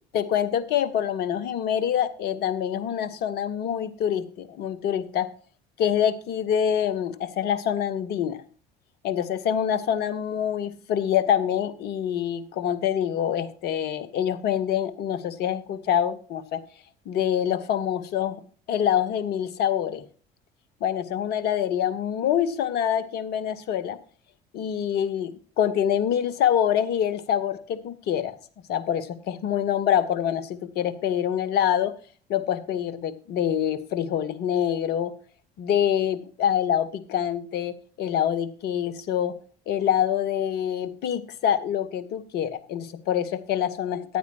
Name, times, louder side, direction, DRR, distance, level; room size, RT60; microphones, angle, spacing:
voice 1, 0.1-5.3 5.8-8.4 9.0-16.6 17.1-18.4 18.7-20.0 20.8-24.0 24.5-28.4 28.7-31.9 32.3-35.1 35.6-39.3 39.7-44.2, left 9 dB, 50° left, 16 dB, 1.2 m, -25 dB
15.0 x 9.5 x 2.8 m, 0.41 s
figure-of-eight pair, 60°, 21 cm